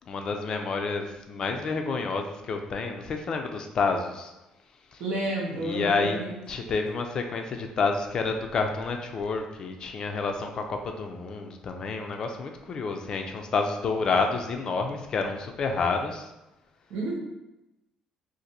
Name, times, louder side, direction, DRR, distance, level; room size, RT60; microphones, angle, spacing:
voice 1, 0.1-4.3 4.9-5.0 5.6-6.2 6.5-16.3, left 4 dB, 35° left, 4 dB, 0.3 m, -29 dB
voice 2, 5.0-6.7 16.9-17.2, right 2 dB, 85° right, -4 dB, 1.0 m, -31 dB
2.5 x 2.5 x 4.1 m, 0.96 s
cardioid pair, 170°, 2 cm